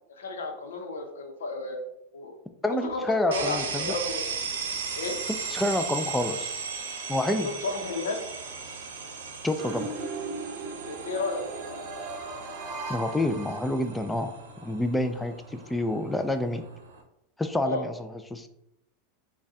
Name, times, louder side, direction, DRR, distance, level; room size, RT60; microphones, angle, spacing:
voice 1, 0.2-1.8 2.1-2.3 2.6-4.2 4.9-5.2 7.3-8.2 10.9-11.9 17.7-17.8, left 3 dB, 90° left, 3 dB, 0.7 m, -33 dB
voice 2, 2.6-4.0 5.5-6.5 7.1-7.5 9.4-9.9 12.9-14.3 14.6-16.6 17.4-18.5, left 1 dB, 5° left, 8 dB, 0.4 m, -28 dB
sound 1, 3.3-17.0, right 5 dB, 80° right, 0.7 m, -37 dB
sound 2, 9.6-14.2, right 3 dB, 45° right, 0.7 m, -37 dB
3.8 x 2.3 x 3.6 m, 0.83 s
hypercardioid pair, 115°, 0 cm